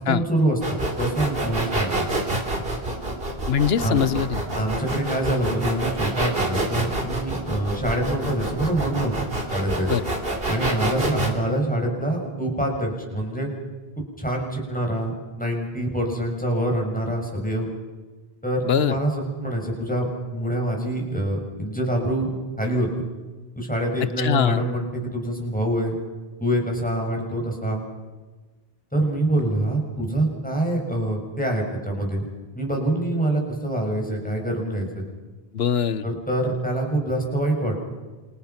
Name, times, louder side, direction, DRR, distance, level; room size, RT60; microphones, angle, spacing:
voice 1, 0.0-2.1 3.8-4.0 4.5-9.1 9.5-9.9 10.5-13.5 14.0-15.1 15.4-17.7 18.4-23.0 23.5-26.0 26.4-27.8 28.9-32.3 32.5-35.1 36.0-37.8, right 1 dB, 10° left, 0 dB, 6.8 m, -25 dB
sound 1, 0.6-11.3, right 2 dB, 65° right, 3.8 m, -27 dB
voice 2, 3.5-4.4 9.9-10.0 18.7-19.0 24.2-24.6 35.5-36.0, left 8 dB, 75° left, 15 dB, 1.2 m, -22 dB
28.5 x 28.0 x 5.9 m, 1.2 s
omnidirectional pair, 1.1 m